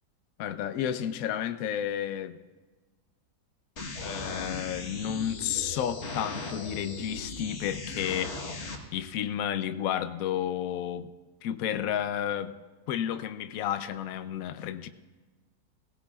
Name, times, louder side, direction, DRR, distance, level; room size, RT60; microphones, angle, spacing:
voice 1, 0.4-2.4 4.0-8.4 8.9-11.1 11.4-12.5 12.9-14.9, left 10 dB, 65° left, 11 dB, 1.0 m, -31 dB
sound 1, 3.8-8.8, left 3 dB, 45° left, 1.5 m, -38 dB
18.5 x 17.0 x 2.4 m, 1.3 s
omnidirectional pair, 1.8 m